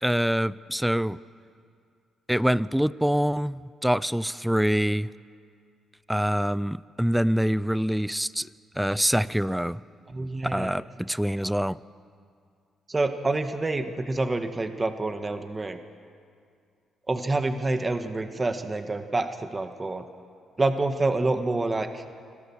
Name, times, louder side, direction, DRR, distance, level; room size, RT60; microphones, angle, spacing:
voice 1, 0.0-1.2 2.3-5.1 6.1-8.5 8.8-9.8 10.5-11.8, equal, 5° right, 19 dB, 0.4 m, -25 dB
voice 2, 10.1-10.7 11.4-11.5 12.9-15.8 17.1-20.0 20.6-22.0, right 2 dB, 25° right, 7 dB, 1.4 m, -27 dB
25.5 x 16.5 x 7.2 m, 2.3 s
cardioid pair, 90°, 0 cm